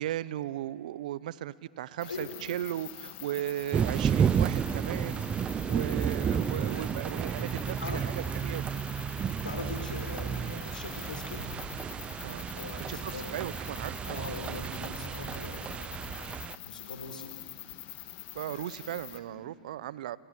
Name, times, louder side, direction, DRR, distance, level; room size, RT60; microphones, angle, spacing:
voice 1, 0.0-8.6 12.2-12.5 12.9-14.3 18.3-20.2, right 13 dB, 65° right, 19 dB, 0.8 m, -37 dB
voice 2, 2.0-2.4 6.7-6.8 7.8-8.0 9.3-11.4 12.5-13.4 14.0-17.4 18.5-18.6 19.3-19.4, left 4 dB, 90° left, 5 dB, 4.1 m, -42 dB
sound 1, 2.0-19.2, left 15 dB, 45° left, 2.1 m, -46 dB
sound 2, 3.7-16.6, right 7 dB, 25° right, 0.6 m, -32 dB
sound 3, 10.9-12.0, right 1 dB, 90° right, 4.9 m, -53 dB
28.0 x 28.0 x 7.5 m, 2.5 s
hypercardioid pair, 100°, 5 cm